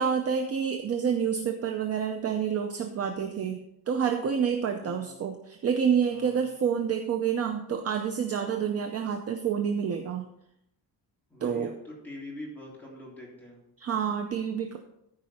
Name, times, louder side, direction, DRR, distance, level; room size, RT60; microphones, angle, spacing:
voice 1, 0.0-3.6 3.9-10.3 11.4-11.7 13.8-14.8, right 7 dB, 35° right, 6 dB, 0.6 m, -28 dB
voice 2, 4.8-5.1 6.1-6.5 11.3-13.6, left 1 dB, 5° left, -5 dB, 3.2 m, -44 dB
13.5 x 4.9 x 4.2 m, 0.79 s
cardioid pair, 170°, 43 cm